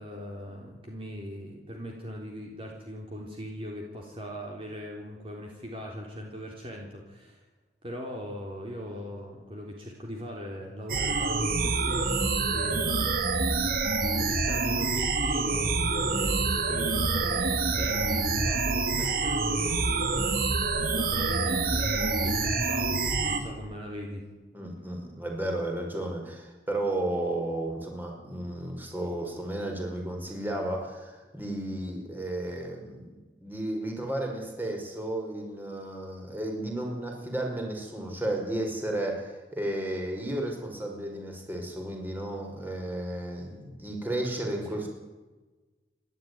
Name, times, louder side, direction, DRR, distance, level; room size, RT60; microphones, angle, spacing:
voice 1, 0.0-7.4 7.8-13.8 14.2-24.2, equal, 30° right, 0 dB, 3.7 m, -40 dB
sound 1, 10.9-23.4, right 3 dB, 55° right, 2.4 m, -27 dB
voice 2, 24.5-44.9, right 1 dB, 10° right, 1 dB, 5.1 m, -33 dB
29.5 x 12.5 x 9.7 m, 1.2 s
head